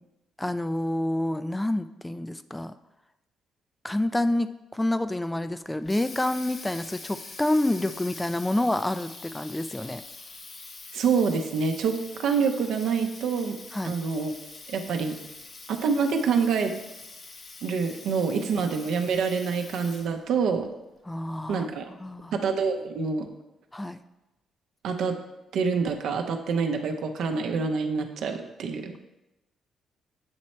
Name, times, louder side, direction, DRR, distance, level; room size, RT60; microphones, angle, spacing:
voice 1, 0.4-2.7 3.8-10.0 13.7-13.9 21.1-22.4 23.7-24.0, left 1 dB, 10° left, 11 dB, 0.3 m, -28 dB
Water tap faucet, 5.6-20.3, left 3 dB, 50° left, 0.8 m, -44 dB
voice 2, 10.9-13.6 13.8-14.3 14.7-15.2 15.7-16.7 17.6-20.7 21.5-21.9 22.3-23.3 24.8-25.1 25.5-29.0, right 5 dB, 75° right, 5 dB, 0.6 m, -26 dB
8.0 x 3.2 x 4.2 m, 0.98 s
supercardioid pair, 70°, 0 cm